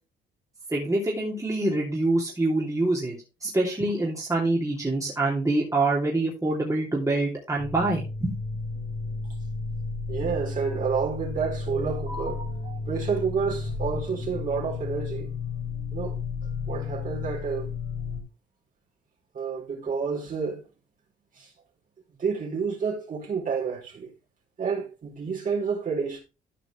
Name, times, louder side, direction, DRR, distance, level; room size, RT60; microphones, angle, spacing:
voice 1, 0.7-8.4, right 2 dB, 15° right, 3.2 m, -25 dB
sound 1, 7.6-18.2, left 4 dB, 60° left, 3.7 m, -33 dB
voice 2, 10.1-15.3 15.9-16.2 16.7-17.7 19.3-20.6 21.3-21.5 22.2-24.1 24.6-26.2, right 5 dB, 40° right, 4.3 m, -29 dB
14.0 x 5.2 x 3.4 m
cardioid pair, 90°, 20 cm